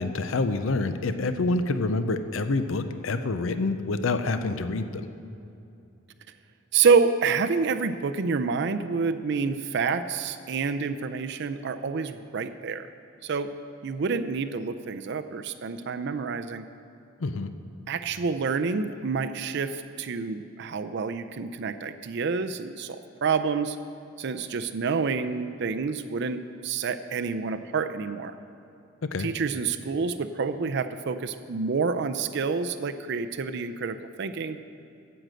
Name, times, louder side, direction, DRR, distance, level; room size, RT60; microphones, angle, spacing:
voice 1, 0.0-5.1 17.2-17.5 29.1-29.3, left 3 dB, 70° left, 10 dB, 0.6 m, -27 dB
voice 2, 6.7-12.9 13.2-13.5 13.8-16.7 17.9-23.8 24.2-28.3 29.2-34.6, right 5 dB, 55° right, 9 dB, 0.4 m, -28 dB
10.0 x 7.9 x 7.6 m, 2.7 s
head